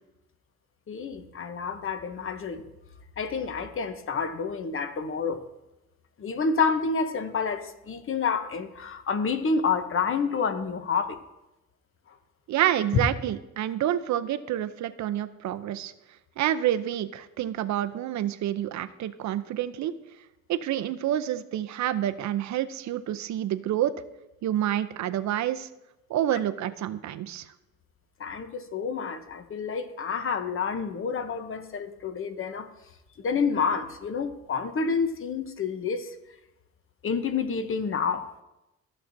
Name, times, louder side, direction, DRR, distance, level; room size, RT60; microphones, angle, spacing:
voice 1, 0.9-2.6 3.2-5.4 6.2-11.2 12.1-12.2 28.2-32.7 33.2-36.1 37.0-38.3, left 5 dB, 45° left, 0.8 m, -29 dB
voice 2, 12.5-15.9 16.4-19.9 20.5-23.9 24.4-25.7 26.1-27.5, right 11 dB, 65° right, 0.6 m, -28 dB
14.5 x 6.5 x 2.6 m
cardioid pair, 90°, 30 cm